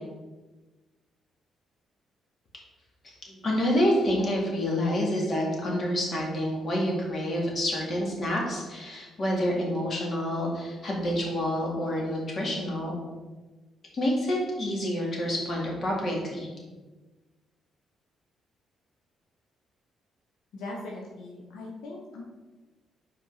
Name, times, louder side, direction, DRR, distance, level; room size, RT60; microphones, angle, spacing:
voice 1, 3.4-13.0 13.9-16.5, equal, 45° left, -2 dB, 2.2 m, -28 dB
voice 2, 20.5-22.2, left 2 dB, 85° left, -2 dB, 1.1 m, -40 dB
5.6 x 4.4 x 5.6 m, 1.2 s
cardioid pair, 90°, 0 cm